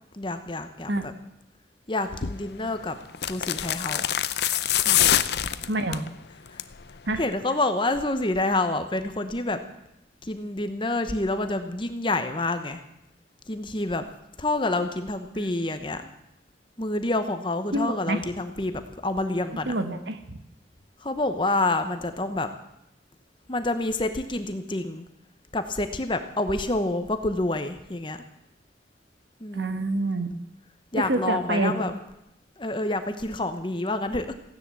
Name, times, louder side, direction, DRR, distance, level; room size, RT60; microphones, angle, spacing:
voice 1, 0.1-1.1 1.9-3.0 3.2-4.1 4.8-5.1 5.4-5.5 6.5-6.6 7.1-9.6 10.2-12.8 13.5-14.0 14.4-16.1 16.8-19.7 21.0-22.5 23.5-25.1 25.5-28.2 29.4-29.8 30.9-31.9 32.6-34.3, left 2 dB, 25° left, 9 dB, 1.0 m, -28 dB
sound 1, 2.1-2.4 3.1-6.1 6.5-6.8 7.1-7.2, left 11 dB, 65° left, 0.6 m, -24 dB
voice 2, 5.7-6.0 7.1-7.2 15.3-15.5 17.7-18.2 19.6-20.4 29.5-30.3 30.9-32.0, right 2 dB, 70° right, 8 dB, 1.4 m, -27 dB
16.0 x 10.5 x 7.6 m, 0.86 s
head